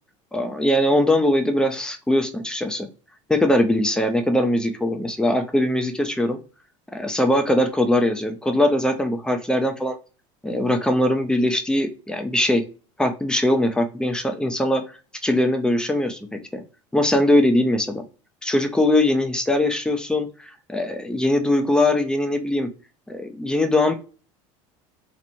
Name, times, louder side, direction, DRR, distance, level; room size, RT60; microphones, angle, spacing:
voice 1, 0.3-2.9 3.3-6.4 6.9-10.0 10.4-12.6 13.0-14.8 15.2-16.6 16.9-18.0 18.4-22.7 23.1-23.9, left 1 dB, 5° left, 5 dB, 0.5 m, -21 dB
3.0 x 2.0 x 2.6 m, 0.36 s
supercardioid pair, 105°, 17 cm